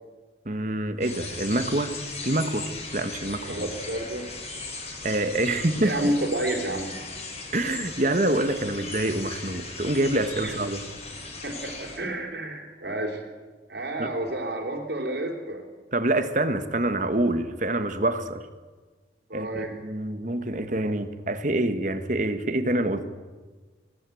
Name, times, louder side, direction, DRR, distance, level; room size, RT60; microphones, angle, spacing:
voice 1, 0.4-2.0 2.2-3.5 5.0-6.1 7.5-10.8 14.0-14.1 15.9-18.4 19.3-23.1, right 1 dB, 45° right, 10 dB, 1.5 m, -26 dB
sound 1, 1.0-12.0, left 3 dB, 40° left, 5.4 m, -38 dB
voice 2, 3.4-4.3 5.8-6.9 10.4-10.6 11.4-13.2 13.7-15.6 19.3-19.7, right 1 dB, 70° right, 1 dB, 3.6 m, -30 dB
20.5 x 17.5 x 9.2 m, 1.4 s
head